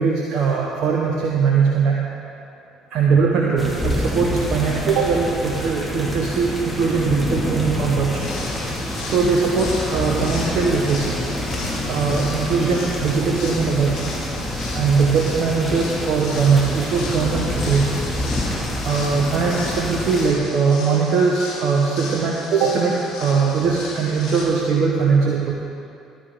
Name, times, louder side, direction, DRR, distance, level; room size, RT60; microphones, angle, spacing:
voice 1, 0.0-2.3 2.9-8.3 9.0-11.2 11.8-14.2 14.7-18.1 18.8-25.5, right 5 dB, 55° right, -2 dB, 1.1 m, -20 dB
sound 1, 3.6-20.3, left 1 dB, 10° left, 2.3 m, -27 dB
sound 2, 8.1-24.4, left 3 dB, 60° left, 2.0 m, -35 dB
15.0 x 10.5 x 3.7 m, 2.5 s
figure-of-eight pair, 55°, 0 cm